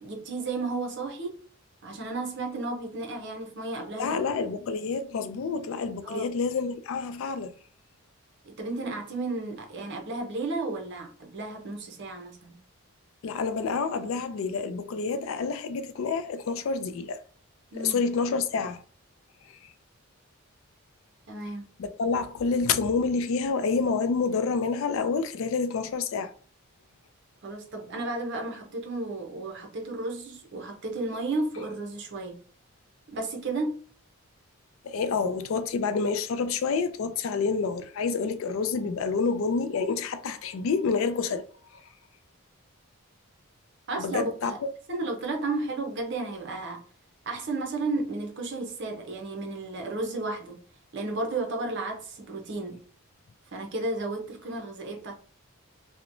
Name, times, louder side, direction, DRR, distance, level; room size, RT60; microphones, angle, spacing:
voice 1, 0.0-1.3 1.8-4.2 6.0-6.3 8.4-12.6 17.7-18.0 21.3-21.7 27.4-32.4 33.1-33.8 43.9-44.6 44.9-46.8 47.3-50.6 50.9-52.8 53.5-55.2, right 2 dB, 50° right, 0.6 m, -33 dB
voice 2, 3.9-7.5 13.2-17.2 17.8-18.8 21.8-26.3 34.8-41.4 44.0-44.5, left 4 dB, 65° left, 0.3 m, -28 dB
2.9 x 2.1 x 2.5 m
head